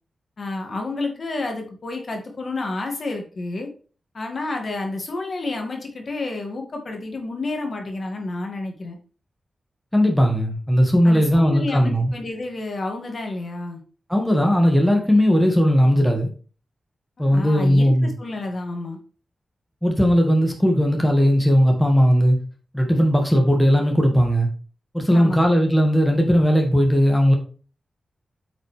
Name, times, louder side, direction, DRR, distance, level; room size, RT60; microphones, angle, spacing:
voice 1, 0.4-3.7 4.1-9.0 11.0-13.8 17.2-19.0 25.1-25.6, left 2 dB, 50° left, 2.2 m, -30 dB
voice 2, 9.9-12.1 14.1-16.3 17.2-18.1 19.8-22.4 22.7-24.5 24.9-27.3, equal, 5° left, 1.9 m, -17 dB
8.8 x 5.9 x 3.4 m
wide cardioid pair, 120°, 0 cm